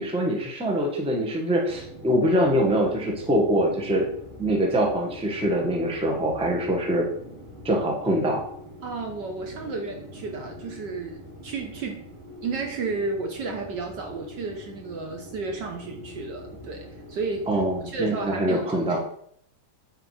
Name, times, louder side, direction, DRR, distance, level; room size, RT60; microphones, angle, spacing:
voice 1, 0.0-4.1 4.4-7.1 7.6-8.4 17.5-19.0, equal, 5° right, 0 dB, 0.9 m, -24 dB
sound 1, 1.6-18.3, equal, 80° right, 4.3 m, -43 dB
voice 2, 8.8-12.1 12.4-17.5 17.8-19.0, right 4 dB, 60° right, 3 dB, 1.4 m, -32 dB
8.9 x 4.1 x 4.8 m, 0.66 s
omnidirectional pair, 2.4 m